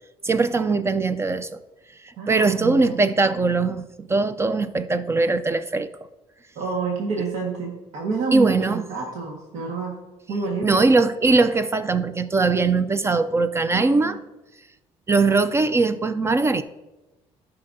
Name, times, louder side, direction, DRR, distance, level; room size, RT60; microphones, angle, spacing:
voice 1, 0.2-1.6 2.0-5.9 8.3-8.8 10.6-14.2 15.1-16.6, right 3 dB, 20° right, 0.4 m, -21 dB
voice 2, 2.2-3.0 6.5-10.0 10.3-10.8 13.7-14.1, right 4 dB, 85° right, 1.6 m, -28 dB
15.0 x 5.7 x 2.7 m
cardioid pair, 115°, 12 cm